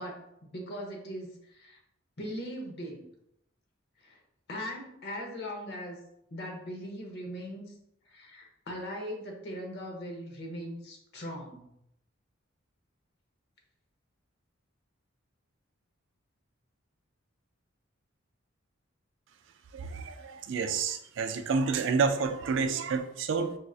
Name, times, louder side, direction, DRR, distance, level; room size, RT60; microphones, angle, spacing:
voice 1, 0.0-1.8 2.2-3.1 4.0-4.2 4.5-6.0 6.3-7.6 8.1-11.7, equal, 55° left, 1 dB, 0.8 m, -40 dB
voice 2, 19.7-23.6, right 5 dB, 60° right, 7 dB, 0.4 m, -29 dB
4.8 x 2.5 x 2.4 m, 0.77 s
head